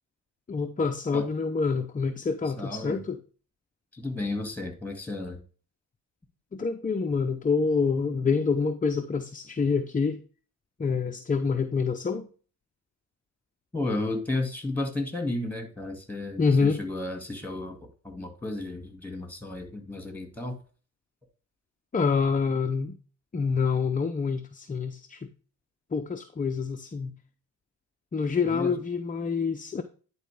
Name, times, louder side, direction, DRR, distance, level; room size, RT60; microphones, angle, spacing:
voice 1, 0.5-3.2 6.5-10.2 10.8-12.3 16.4-16.8 21.9-23.0 23.3-25.3 25.9-27.1 28.1-29.8, left 5 dB, 20° left, 0.6 m, -27 dB
voice 2, 2.6-3.0 3.9-5.4 13.7-20.6 28.4-28.8, left 2 dB, 5° left, 2.3 m, -33 dB
10.5 x 4.3 x 3.5 m
cardioid pair, 75°, 40 cm